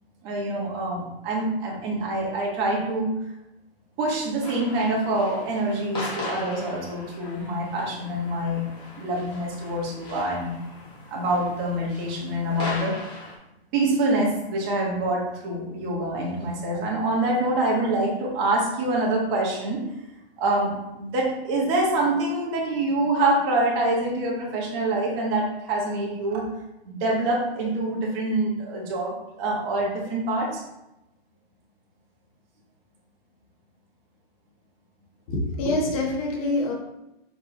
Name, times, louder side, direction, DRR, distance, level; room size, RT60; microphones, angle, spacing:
voice 1, 0.2-3.1 4.0-8.6 9.0-10.6 11.1-12.9 13.7-19.8 20.4-26.4 26.8-30.6, right 2 dB, 25° right, -3 dB, 1.5 m, -25 dB
sound 1, 4.4-13.4, left 2 dB, 15° left, 1.3 m, -39 dB
voice 2, 35.3-36.7, left 2 dB, 35° left, 0 dB, 1.3 m, -25 dB
6.9 x 3.5 x 3.9 m, 0.91 s
hypercardioid pair, 165°, 31 cm